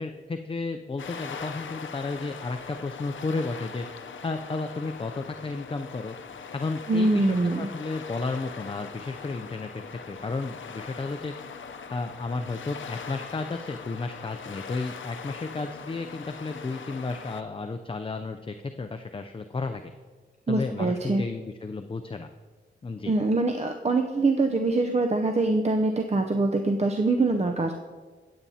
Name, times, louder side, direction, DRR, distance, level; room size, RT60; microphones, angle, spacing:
voice 1, 0.0-3.9 4.2-6.2 6.5-11.3 11.9-19.9 20.5-22.3 22.8-23.1, left 3 dB, 30° left, 7 dB, 0.4 m, -33 dB
sound 1, 1.0-17.4, left 6 dB, 85° left, 0.6 m, -41 dB
voice 2, 6.9-7.7 20.5-21.2 23.1-27.7, right 2 dB, 35° right, 4 dB, 0.6 m, -24 dB
16.0 x 8.5 x 2.8 m, 1.5 s
wide cardioid pair, 80°, 19 cm